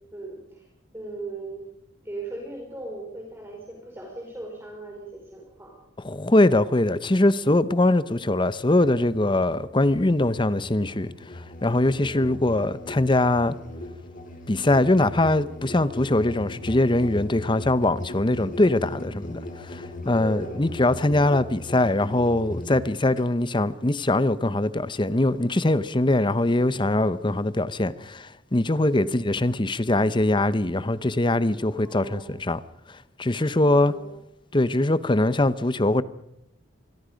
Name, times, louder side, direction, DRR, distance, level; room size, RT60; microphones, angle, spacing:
voice 1, 0.1-0.7 0.9-1.6 2.0-5.7 12.0-12.4 20.2-20.6 28.8-29.2 31.6-32.4 33.6-34.1, right 2 dB, 15° right, 4.4 m, -38 dB
voice 2, 6.0-13.5 14.5-32.6 33.2-33.9 34.5-36.0, left 2 dB, 25° left, 0.8 m, -22 dB
Musical instrument, 8.8-23.3, left 2 dB, 45° left, 3.1 m, -39 dB
26.0 x 22.0 x 5.2 m
head